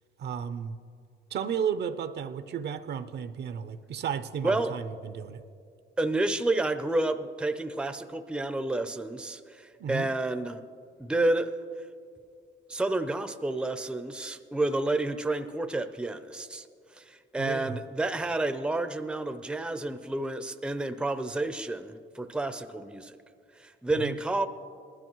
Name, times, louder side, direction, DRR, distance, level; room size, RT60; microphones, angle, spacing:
voice 1, 0.2-0.8 1.3-5.4 9.8-10.1 17.4-17.8 23.9-24.2, right 7 dB, 55° right, 12 dB, 0.6 m, -33 dB
voice 2, 6.0-10.6 11.0-11.5 12.7-16.7 16.9-23.2 23.6-24.5, right 2 dB, 5° right, 10 dB, 0.5 m, -30 dB
18.5 x 12.5 x 3.1 m, 2.3 s
cardioid pair, 90°, 20 cm